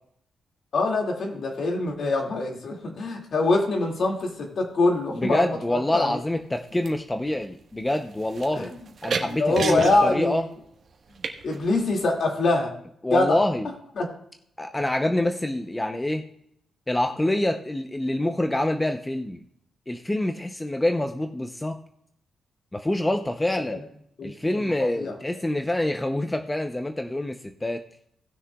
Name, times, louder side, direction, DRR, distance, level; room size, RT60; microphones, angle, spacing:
voice 1, 0.7-6.2 8.6-8.7 9.4-10.4 11.4-12.7 13.1-13.4 14.0-14.1 24.2-24.3 24.8-25.1, left 2 dB, 60° left, 1 dB, 2.2 m, -24 dB
sound 1, 4.0-4.3 5.2-5.8 6.1-12.2, right 5 dB, 55° right, 1.4 m, -35 dB
voice 2, 5.2-8.7 9.0-10.5 13.0-13.7 14.6-16.3 16.9-19.4 19.9-21.8 22.7-23.8 24.2-27.8, left 1 dB, 10° left, 6 dB, 0.7 m, -26 dB
18.5 x 6.4 x 2.3 m, 0.71 s
cardioid pair, 110°, 0 cm